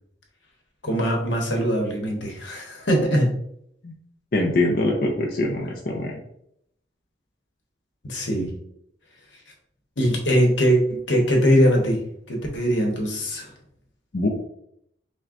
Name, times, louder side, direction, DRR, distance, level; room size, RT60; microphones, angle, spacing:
voice 1, 0.8-3.3 8.1-8.5 10.0-12.0 12.3-13.5, equal, 85° left, 1 dB, 1.0 m, -21 dB
voice 2, 4.3-6.2 14.1-14.3, left 2 dB, 50° left, 0 dB, 0.4 m, -23 dB
5.9 x 2.2 x 2.4 m, 0.73 s
head